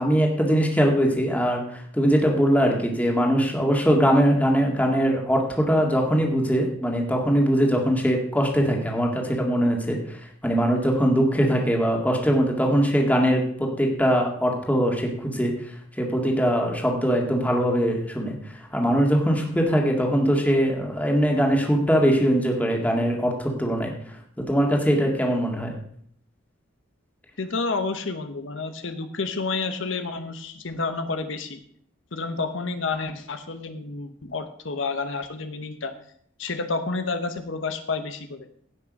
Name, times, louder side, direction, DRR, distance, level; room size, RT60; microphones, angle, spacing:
voice 1, 0.0-10.2 10.4-15.5 16.0-25.7, equal, 10° left, 0 dB, 1.9 m, -22 dB
voice 2, 27.4-31.6 32.1-35.9 36.4-38.5, left 4 dB, 70° left, 8 dB, 0.9 m, -30 dB
16.0 x 6.0 x 5.3 m, 0.64 s
head